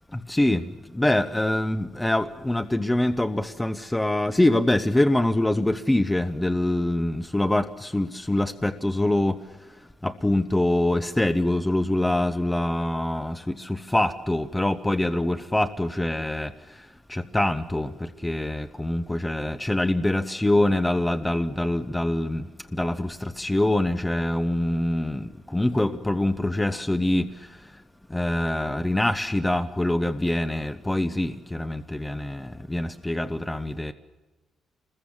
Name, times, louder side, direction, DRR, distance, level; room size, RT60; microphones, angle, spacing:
voice 1, 0.3-0.6 0.9-9.4 10.0-16.5 17.1-17.9 18.2-22.4 22.8-27.3 28.1-33.9, left 1 dB, 10° left, 10 dB, 0.7 m, -24 dB
27.0 x 21.0 x 7.2 m, 1.2 s
cardioid pair, 150°, 0 cm